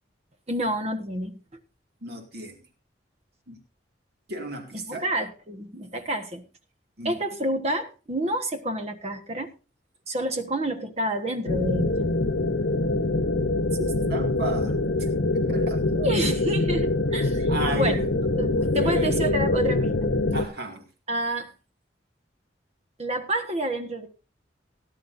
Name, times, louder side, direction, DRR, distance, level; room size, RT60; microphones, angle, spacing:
voice 1, 0.5-1.4 4.7-6.4 7.0-9.5 10.1-12.1 15.9-18.0 18.4-20.1 21.1-21.5 23.0-24.1, right 1 dB, 35° right, 7 dB, 1.4 m, -29 dB
voice 2, 2.0-2.6 3.5-3.6 4.3-5.1 7.0-7.1 13.7-15.1 15.3-15.8 17.5-18.1 18.7-19.1 20.3-20.8, right 2 dB, 55° right, 4 dB, 2.3 m, -34 dB
sound 1, 11.5-20.4, left 2 dB, 75° left, 1.0 m, -24 dB
18.0 x 10.5 x 2.7 m, 0.32 s
head